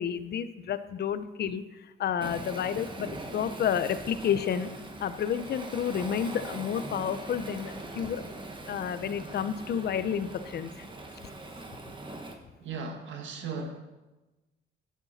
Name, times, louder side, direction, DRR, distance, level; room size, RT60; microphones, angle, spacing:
voice 1, 0.0-1.6 2.0-4.7 5.0-8.2 8.7-10.7, left 8 dB, 55° left, 0.7 m, -30 dB
Waves surf, 2.2-12.3, right 2 dB, 25° right, 1.4 m, -41 dB
voice 2, 12.6-13.8, right 4 dB, 70° right, 1.8 m, -37 dB
11.0 x 8.3 x 4.2 m
cardioid pair, 90°, 20 cm